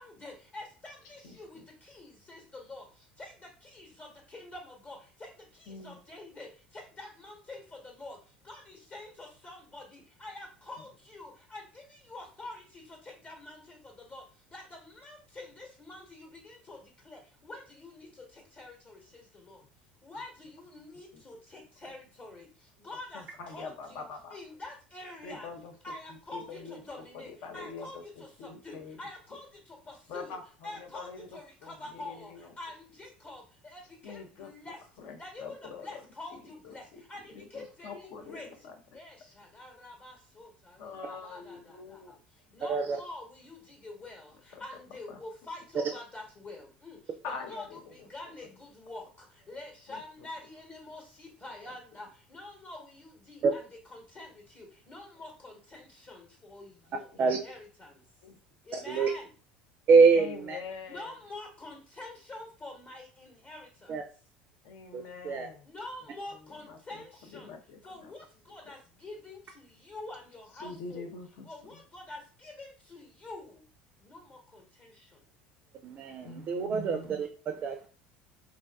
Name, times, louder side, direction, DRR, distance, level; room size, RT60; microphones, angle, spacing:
voice 1, 0.0-19.6 20.0-24.0 24.3-25.5 25.8-30.4 30.6-34.8 35.2-38.5 38.9-58.0 58.6-59.3 60.9-64.0 65.6-67.6 67.8-71.1 71.4-73.7 74.0-75.2, left 2 dB, 35° left, 1 dB, 0.9 m, -47 dB
voice 2, 5.7-6.0 21.1-21.2 23.1-24.4 25.2-26.8 27.1-29.0 30.1-32.5 34.0-36.0 36.3-37.0 37.3-38.8 40.8-42.2 44.5-44.6 45.1-45.2 47.2-48.1 49.9-50.0 51.6-51.8 58.2-58.4 60.1-61.1 64.6-65.7 66.3-68.1 70.5-71.8 76.2-77.2, left 4 dB, 55° left, 4 dB, 0.4 m, -45 dB
voice 3, 58.7-59.1 59.9-60.6 63.9-64.0 64.9-65.5 75.8-77.9, right 5 dB, 40° right, 5 dB, 0.3 m, -25 dB
2.5 x 2.2 x 2.2 m, 0.37 s
figure-of-eight pair, 70°, 5 cm